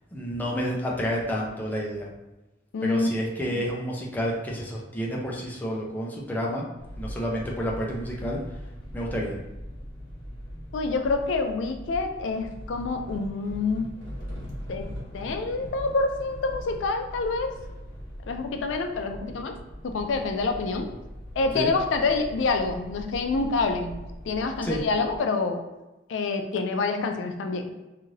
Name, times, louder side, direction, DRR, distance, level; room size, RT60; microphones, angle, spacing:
voice 1, 0.1-2.1 2.8-6.7 7.0-8.6 8.9-9.4 21.5-21.7 24.6-24.8, equal, 10° left, -3 dB, 0.5 m, -30 dB
voice 2, 2.7-3.1 10.7-13.9 14.7-14.9 15.1-17.5 18.3-19.5 19.8-20.9 21.4-23.9 24.2-25.6 26.1-27.7, left 3 dB, 85° left, 5 dB, 0.4 m, -27 dB
sound 1, 6.8-25.2, equal, 50° left, 0.7 m, -41 dB
sound 2, 10.9-11.6 11.9-17.9, equal, 85° right, 0.8 m, -43 dB
2.7 x 2.4 x 3.1 m, 1.0 s
head